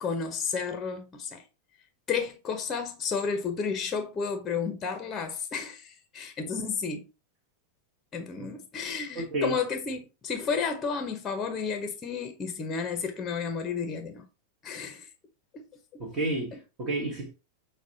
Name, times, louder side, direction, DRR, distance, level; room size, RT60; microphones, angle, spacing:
voice 1, 0.0-1.4 2.1-7.1 8.1-14.3 14.6-15.1 15.5-15.6 15.9-16.0, left 5 dB, 25° left, 0.6 m, -32 dB
voice 2, 9.1-9.6 16.0-17.3, right 2 dB, 35° right, 1.0 m, -31 dB
6.0 x 2.1 x 2.6 m
figure-of-eight pair, 90°, 0 cm